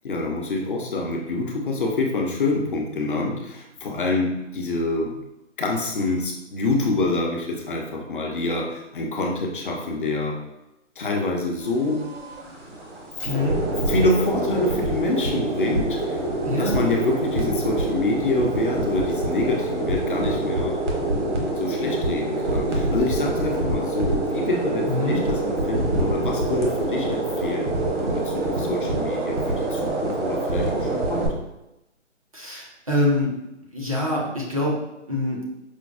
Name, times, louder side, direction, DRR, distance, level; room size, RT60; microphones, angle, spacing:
voice 1, 0.0-5.3 5.6-10.4 11.0-12.1 13.9-16.3 16.6-20.8 21.6-27.7 28.0-31.3, left 2 dB, 45° left, 1 dB, 0.5 m, -26 dB
sound 1, 11.6-31.3, right 2 dB, 70° right, 1.0 m, -26 dB
voice 2, 13.3-13.6 16.4-16.8 24.9-25.2 32.3-33.3 33.7-34.7 35.1-35.4, left 1 dB, 30° right, -3 dB, 0.4 m, -24 dB
5.0 x 2.0 x 2.3 m, 0.91 s
hypercardioid pair, 150°, 37 cm